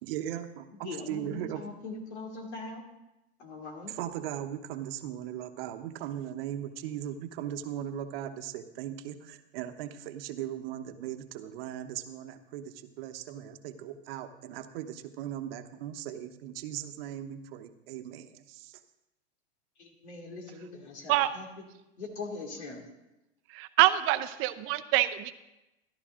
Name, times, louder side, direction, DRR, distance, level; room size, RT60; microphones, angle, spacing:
voice 1, 0.0-1.6 3.8-18.7, right 11 dB, 60° right, 8 dB, 1.0 m, -38 dB
voice 2, 0.7-2.8 3.4-3.9 19.8-21.5 22.0-22.8, left 3 dB, 85° left, 2 dB, 2.7 m, -41 dB
voice 3, 23.5-25.4, right 15 dB, 40° right, 11 dB, 0.6 m, -25 dB
14.0 x 11.5 x 3.7 m, 0.96 s
hypercardioid pair, 115°, 33 cm